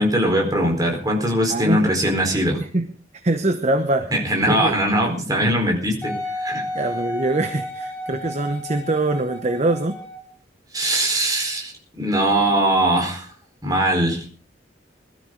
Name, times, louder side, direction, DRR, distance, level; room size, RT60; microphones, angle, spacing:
voice 1, 0.0-2.6 4.1-6.6 10.7-13.3 13.6-14.2, right 1 dB, 20° right, 1 dB, 4.4 m, -21 dB
voice 2, 1.5-1.9 2.5-2.9 3.2-4.1 4.5-4.7 6.7-10.0, right 2 dB, 40° right, 8 dB, 1.0 m, -23 dB
Wind instrument woodwind instrument, 6.0-10.3 11.0-11.1, left 1 dB, 10° left, 7.0 m, -32 dB
22.0 x 13.0 x 3.9 m, 0.40 s
head